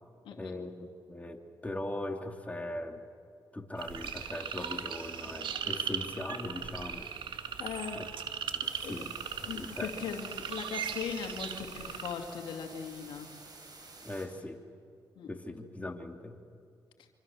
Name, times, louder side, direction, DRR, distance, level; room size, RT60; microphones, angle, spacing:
voice 1, 0.3-3.0 3.5-7.1 7.9-8.1 8.5-9.1 9.4-9.9 14.0-14.6 15.3-16.4, left 1 dB, 15° left, 4 dB, 3.1 m, -40 dB
sound 1, 3.8-12.1, right 7 dB, 75° right, 2.2 m, -38 dB
voice 2, 7.6-8.0 8.8-9.0 9.4-13.3 15.2-15.3, left 7 dB, 85° left, 4 dB, 2.3 m, -39 dB
sound 2, 8.6-14.3, right 3 dB, 55° right, 7.8 m, -51 dB
25.5 x 25.5 x 7.2 m, 2.4 s
supercardioid pair, 50°, 8 cm